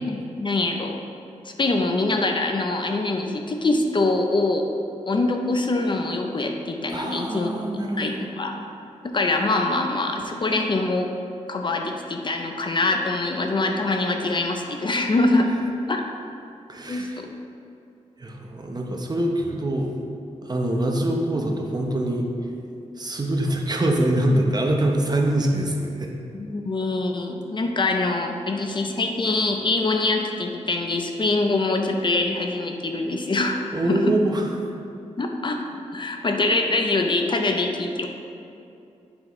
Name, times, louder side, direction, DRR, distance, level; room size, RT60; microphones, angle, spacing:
voice 1, 0.1-1.0 1.4-4.7 5.1-8.5 9.0-11.1 11.5-15.5 15.9-16.0 16.9-17.3 26.4-33.6 33.9-34.1 35.2-38.1, left 2 dB, 40° left, 3 dB, 0.6 m, -24 dB
voice 2, 6.9-8.3 16.7-17.2 18.2-19.9 20.4-22.3 23.0-26.1 33.7-34.8, right 1 dB, 35° right, 1 dB, 0.8 m, -24 dB
7.9 x 5.5 x 3.1 m, 2.6 s
cardioid pair, 70°, 13 cm